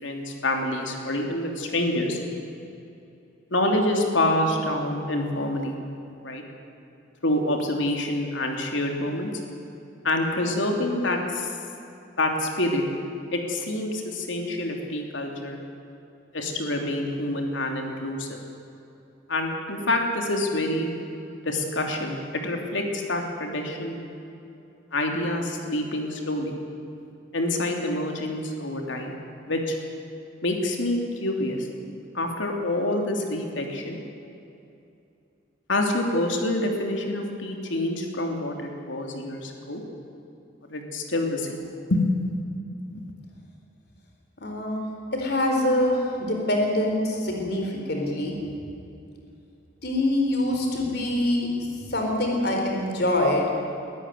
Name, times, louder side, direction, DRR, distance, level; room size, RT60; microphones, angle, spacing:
voice 1, 0.0-2.2 3.5-5.7 6.2-6.4 7.2-9.3 10.0-11.5 12.2-12.8 13.3-15.6 16.3-18.4 19.3-20.9 21.4-24.0 24.9-26.5 27.3-29.1 29.5-29.7 30.4-31.7 32.1-34.0 35.7-39.8 40.7-41.6 41.9-42.0 42.9-43.0, left 1 dB, 75° left, 2 dB, 3.1 m, -27 dB
voice 2, 44.4-48.4 49.8-53.5, left 1 dB, 55° left, 1 dB, 4.1 m, -25 dB
22.5 x 14.0 x 9.5 m, 2.7 s
head